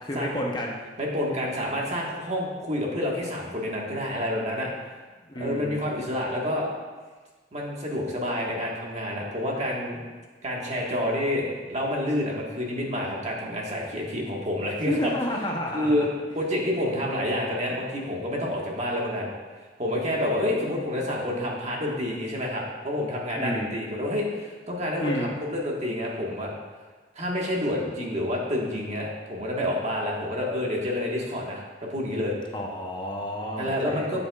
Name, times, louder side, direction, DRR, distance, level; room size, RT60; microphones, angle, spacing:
voice 1, 0.0-0.8 5.3-5.8 14.9-16.1 23.4-23.7 25.0-25.3 32.5-34.2, equal, 25° left, -1 dB, 0.7 m, -30 dB
voice 2, 1.0-4.7 5.4-6.7 7.5-10.0 10.4-15.1 15.7-16.1 16.3-19.3 19.8-26.5 27.1-32.3 33.6-34.2, left 1 dB, 35° right, -2 dB, 1.5 m, -28 dB
12.0 x 7.4 x 2.4 m, 1.4 s
head